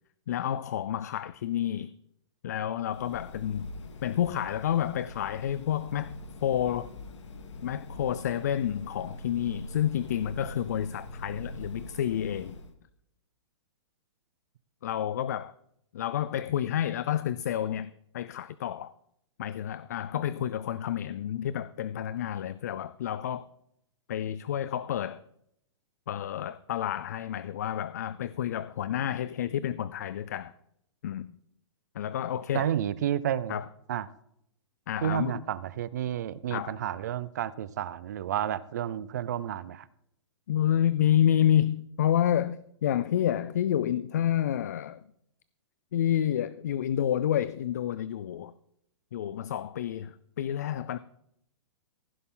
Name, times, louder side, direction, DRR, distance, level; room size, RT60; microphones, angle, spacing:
voice 1, 0.3-1.9 2.4-3.7 4.0-6.9 7.6-12.6 14.8-15.5 15.9-18.9 19.4-23.5 24.1-25.2 26.1-30.5 31.0-31.3 32.0-32.7 33.5-33.7 34.9-35.4 36.5-36.8 40.5-45.0 45.9-48.5 49.1-51.0, left 10 dB, 35° left, 0.3 m, -29 dB
sound 1, 2.9-12.7, left 1 dB, 75° left, 1.8 m, -43 dB
voice 2, 32.5-33.6 33.9-34.1 35.0-39.9, right 10 dB, 35° right, 0.5 m, -31 dB
15.5 x 10.0 x 3.8 m
hypercardioid pair, 175°, 15 cm